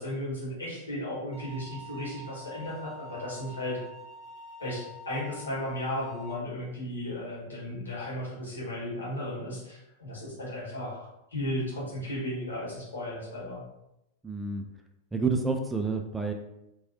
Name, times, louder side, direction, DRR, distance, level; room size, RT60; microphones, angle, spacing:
voice 1, 0.0-3.8 4.6-13.6, left 1 dB, 75° left, -6 dB, 1.4 m, -35 dB
sound 1, 1.3-6.3, right 1 dB, 40° left, 0.6 m, -46 dB
voice 2, 14.2-14.6 15.1-16.3, right 4 dB, 10° right, 4 dB, 0.3 m, -29 dB
3.0 x 2.6 x 2.7 m, 0.88 s
figure-of-eight pair, 90°, 0 cm